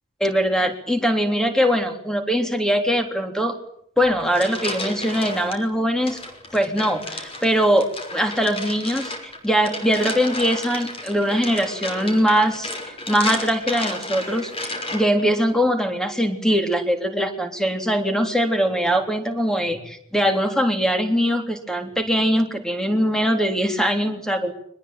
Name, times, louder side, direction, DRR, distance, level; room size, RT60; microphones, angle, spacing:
voice 1, 0.2-3.5 4.0-6.2 6.5-24.5, equal, 5° left, 5 dB, 3.5 m, -22 dB
sound 1, 4.0-5.6 6.1-15.3, left 2 dB, 25° left, 5.7 m, -33 dB
24.5 x 20.5 x 9.3 m, 0.70 s
head